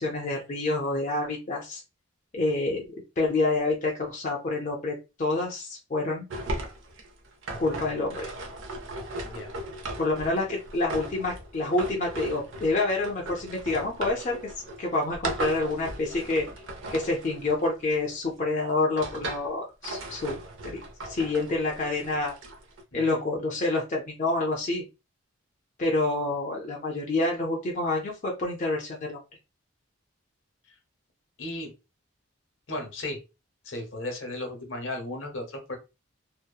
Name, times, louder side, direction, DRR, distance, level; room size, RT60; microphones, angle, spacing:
voice 1, 0.0-1.8 2.3-6.3 7.6-8.3 10.0-14.4 14.8-16.5 16.9-20.3 20.6-22.3 22.9-24.8 25.8-29.2, left 2 dB, 35° left, -2 dB, 0.5 m, -28 dB
sound 1, 6.3-18.2 18.7-19.5 19.8-22.8, right 1 dB, 65° right, 0.5 m, -37 dB
voice 2, 22.9-23.2 31.4-31.7 32.7-33.2 33.6-35.8, left 1 dB, 65° left, 3 dB, 0.8 m, -35 dB
2.7 x 2.0 x 2.2 m, 0.27 s
head